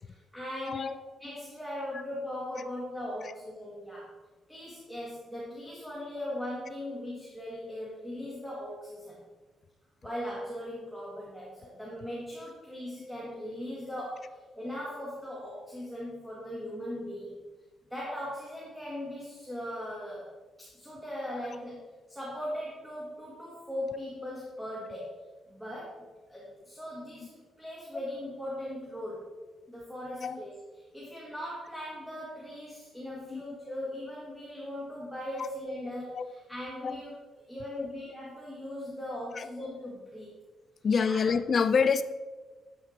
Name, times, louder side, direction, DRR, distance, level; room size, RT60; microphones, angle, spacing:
voice 1, 0.0-4.1 4.5-9.2 10.0-17.4 17.9-20.3 20.6-25.1 25.5-29.3 29.7-30.5 30.9-37.1 37.4-40.3 41.1-41.2, left 1 dB, ahead, -7 dB, 2.1 m, -39 dB
voice 2, 40.8-42.0, left 5 dB, 35° left, 11 dB, 0.5 m, -27 dB
12.5 x 9.4 x 2.9 m, 1.3 s
cardioid pair, 165°, 0 cm